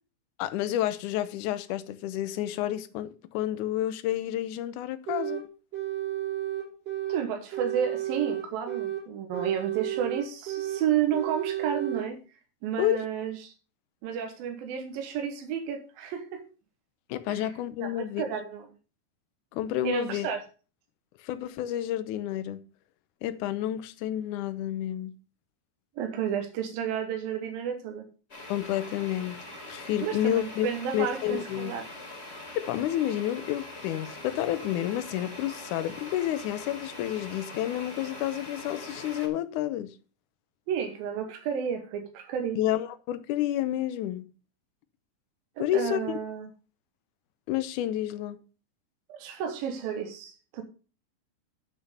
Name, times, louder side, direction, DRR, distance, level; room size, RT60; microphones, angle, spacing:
voice 1, 0.4-5.4 12.8-13.0 17.1-18.2 19.5-20.3 21.2-22.6 23.2-25.1 28.5-29.4 29.7-30.7 30.9-31.7 32.6-40.0 42.6-44.2 45.6-46.2 47.5-48.4, left 12 dB, 75° left, 2.1 m, -30 dB
sound 1, 5.1-5.4 5.7-7.2 7.5-9.0 9.3-10.8 11.1-12.1, right 13 dB, 65° right, 4.4 m, -32 dB
voice 2, 7.1-12.2 12.6-13.5 14.0-16.4 17.4-17.5 17.8-18.7 19.8-20.4 26.0-28.1 30.0-31.9 40.7-42.6 45.6-46.5 49.1-50.6, right 8 dB, 85° right, 3.0 m, -31 dB
sound 2, 28.3-39.3, left 2 dB, 20° left, 2.4 m, -43 dB
8.2 x 6.1 x 6.6 m
omnidirectional pair, 4.0 m